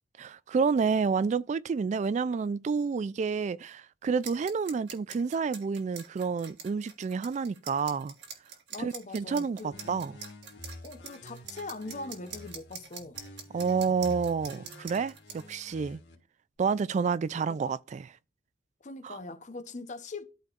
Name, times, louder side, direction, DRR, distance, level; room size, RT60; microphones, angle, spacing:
voice 1, 0.2-8.1 8.8-10.1 13.5-16.0 16.6-18.1 19.0-19.2, right 5 dB, 40° right, 0.3 m, -29 dB
sound 1, 4.2-15.7, right 6 dB, 80° right, 1.6 m, -45 dB
voice 2, 8.7-10.1 10.8-13.2 17.5-17.8 18.8-20.2, left 3 dB, 45° left, 0.8 m, -42 dB
sound 2, 9.7-12.7 13.1-16.1, left 1 dB, 80° left, 1.9 m, -48 dB
12.5 x 4.3 x 2.5 m
head